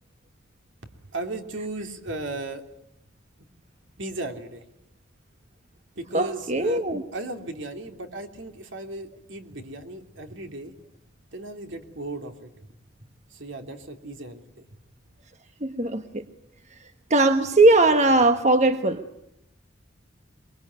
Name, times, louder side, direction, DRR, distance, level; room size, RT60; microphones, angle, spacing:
voice 1, 1.1-2.6 4.0-4.6 6.0-6.8 7.1-10.7 11.3-12.5 13.3-14.6, right 2 dB, 70° right, 5 dB, 3.1 m, -36 dB
voice 2, 6.1-7.0 15.6-16.2 17.1-19.0, right 2 dB, 35° right, 7 dB, 1.3 m, -19 dB
23.5 x 22.5 x 9.6 m, 0.79 s
head